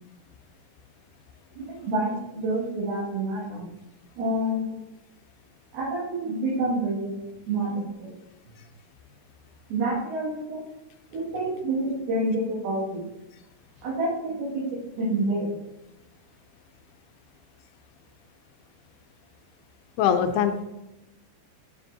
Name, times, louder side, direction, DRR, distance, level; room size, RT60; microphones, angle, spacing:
voice 1, 1.6-3.7 4.2-4.8 5.7-7.2 7.5-8.1 9.7-10.6 11.1-13.1 13.8-14.7 15.0-15.5, right 1 dB, 65° right, -8 dB, 3.7 m, -28 dB
voice 2, 20.0-20.7, left 8 dB, 80° left, 7 dB, 2.4 m, -22 dB
10.0 x 7.1 x 2.7 m, 0.95 s
omnidirectional pair, 4.8 m